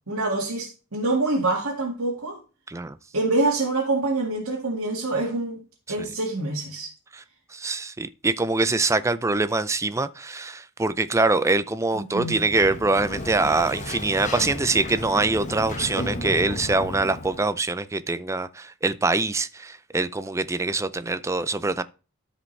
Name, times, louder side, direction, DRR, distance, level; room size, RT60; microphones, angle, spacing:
voice 1, 0.1-2.4 3.1-5.6 5.9-6.9 12.0-12.4, right 2 dB, 90° right, 1.9 m, -26 dB
voice 2, 2.7-3.0 5.9-6.1 7.1-7.2 7.5-21.8, right 3 dB, 15° right, 0.4 m, -24 dB
Sliding door, 12.2-17.5, left 1 dB, 35° left, 1.2 m, -34 dB
13.0 x 5.1 x 3.2 m
head